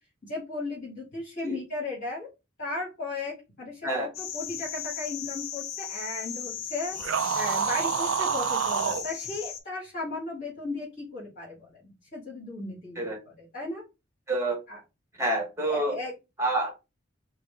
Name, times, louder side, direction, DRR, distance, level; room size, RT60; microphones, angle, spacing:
voice 1, 0.2-2.3 2.6-7.0 7.3-13.8 14.7-14.8 15.6-16.1, left 2 dB, 45° left, -8 dB, 1.8 m, -36 dB
sound 1, 4.1-9.6, left 9 dB, 85° left, 0.7 m, -36 dB
sound 2, 7.0-9.1, right 8 dB, 70° right, 0.3 m, -27 dB
voice 2, 14.3-14.6 15.2-16.0 16.4-16.7, right 2 dB, 15° right, 2 dB, 1.0 m, -27 dB
4.6 x 2.1 x 3.3 m, 0.25 s
head